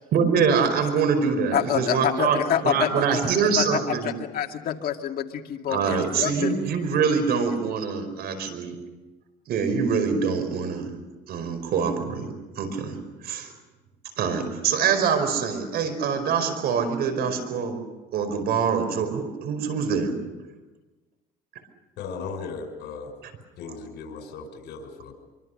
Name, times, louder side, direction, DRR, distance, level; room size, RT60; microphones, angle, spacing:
voice 1, 0.1-2.4 2.6-4.1 5.7-8.7 9.5-10.9 11.3-13.5 14.2-17.8 18.1-20.1, right 6 dB, 70° right, 9 dB, 5.0 m, -24 dB
voice 2, 1.5-6.6, left 9 dB, 60° left, 4 dB, 2.2 m, -27 dB
voice 3, 22.0-23.1 23.6-25.1, left 5 dB, 80° left, 5 dB, 5.8 m, -37 dB
25.5 x 24.5 x 6.6 m, 1.2 s
cardioid pair, 110°, 17 cm